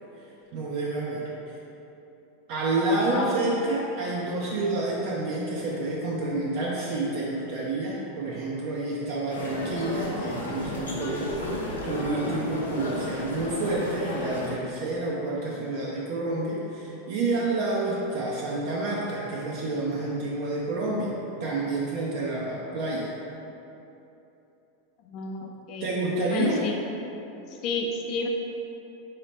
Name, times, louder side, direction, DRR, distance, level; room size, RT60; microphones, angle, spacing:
voice 1, 0.5-1.3 2.5-21.1 21.4-23.1 25.8-26.6, right 2 dB, 55° right, -5 dB, 0.5 m, -29 dB
sound 1, 9.3-14.5, left 1 dB, 90° left, 0.6 m, -32 dB
voice 2, 25.1-25.9 26.3-26.8 27.6-28.3, left 4 dB, 45° left, 2 dB, 0.3 m, -31 dB
3.9 x 2.8 x 3.3 m, 3.0 s
hypercardioid pair, 95°, 0 cm